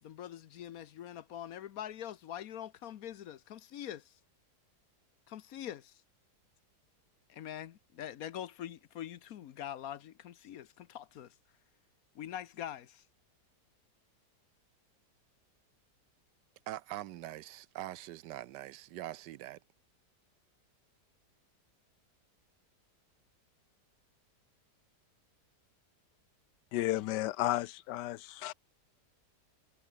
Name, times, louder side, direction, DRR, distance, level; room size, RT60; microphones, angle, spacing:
voice 1, 0.0-4.1 5.3-6.0 7.3-11.3 12.1-13.0, left 10 dB, 65° left, 1.2 m, -44 dB
voice 2, 16.7-19.6, right 14 dB, 85° right, 1.3 m, -43 dB
voice 3, 26.7-28.5, left 15 dB, 85° left, 1.3 m, -33 dB
omnidirectional pair, 1.8 m